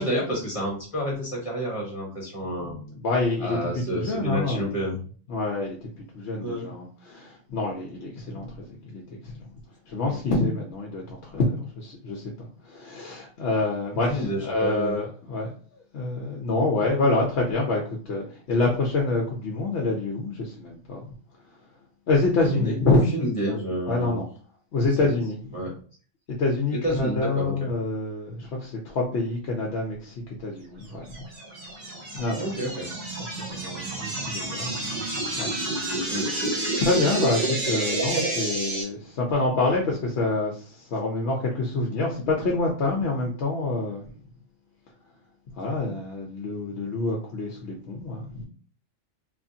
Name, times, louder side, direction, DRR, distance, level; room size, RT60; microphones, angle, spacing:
voice 1, 0.0-2.7 3.4-5.0 6.4-6.7 10.1-10.2 14.1-15.0 22.5-24.2 25.0-25.1 25.5-25.7 26.7-27.7 32.4-32.9 36.1-36.3, equal, 25° left, -3 dB, 1.1 m, -29 dB
voice 2, 2.4-4.7 5.3-9.5 9.9-21.1 22.1-23.0 23.9-24.3 24.7-25.8 26.3-31.3 32.1-32.5 33.2-35.0 35.4-35.5 35.8-44.1 45.6-48.4, left 2 dB, 60° left, -1 dB, 0.9 m, -27 dB
sound 1, 31.1-38.8, right 2 dB, 45° right, 0.6 m, -29 dB
3.0 x 2.5 x 2.6 m, 0.42 s
omnidirectional pair, 1.4 m